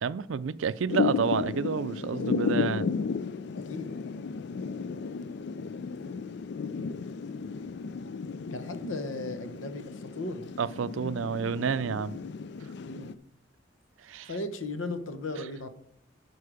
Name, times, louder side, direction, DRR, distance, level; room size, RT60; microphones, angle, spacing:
voice 1, 0.0-2.9 10.6-12.2 14.0-14.3, right 6 dB, 80° right, 0.4 m, -29 dB
Thunder / Rain, 0.9-13.1, left 5 dB, 60° left, 0.4 m, -34 dB
voice 2, 3.5-3.9 8.5-10.5 12.8-13.2 14.3-15.7, left 2 dB, 90° left, 1.0 m, -36 dB
11.0 x 4.7 x 5.0 m
head